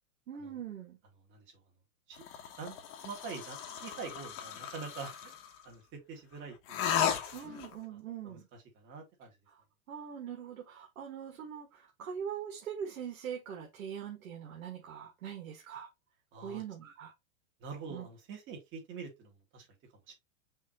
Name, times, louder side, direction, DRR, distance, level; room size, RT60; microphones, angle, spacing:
voice 1, 0.3-1.0 7.3-8.5 9.5-15.9 16.4-17.1 17.9-18.1, right 8 dB, 80° right, 1.7 m, -42 dB
sound 1, 2.2-5.6 6.7-7.7, left 8 dB, 30° left, 1.0 m, -36 dB
voice 2, 3.0-5.4 5.6-7.0 7.4-7.5 8.2-8.4 8.8-9.3 16.3-16.6 17.6-19.7 20.1-20.2, right 5 dB, 30° right, 1.8 m, -45 dB
5.6 x 2.9 x 2.8 m
hypercardioid pair, 140°, 42 cm